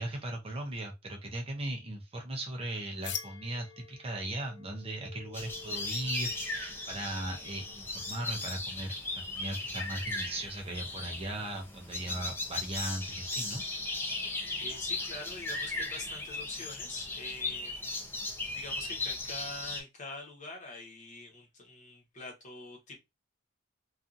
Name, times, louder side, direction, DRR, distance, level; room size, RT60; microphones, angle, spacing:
voice 1, 0.0-13.6, right 1 dB, 30° right, 0.6 m, -38 dB
sound 1, 3.0-8.6, left 8 dB, 60° left, 0.5 m, -47 dB
sound 2, 5.3-19.8, left 2 dB, 10° left, 0.5 m, -37 dB
voice 2, 14.6-17.9 18.2-23.0, left 3 dB, 40° left, 1.1 m, -45 dB
2.7 x 2.4 x 2.5 m
head